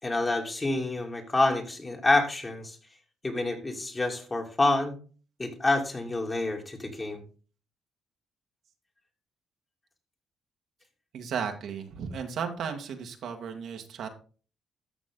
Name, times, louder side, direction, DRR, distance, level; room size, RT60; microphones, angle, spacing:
voice 1, 0.0-2.8 3.2-4.9 5.4-7.2, left 2 dB, 25° left, 2 dB, 2.8 m, -27 dB
voice 2, 11.1-14.1, right 6 dB, 70° right, 5 dB, 1.7 m, -35 dB
13.5 x 6.2 x 3.8 m, 0.38 s
cardioid pair, 90°, 0 cm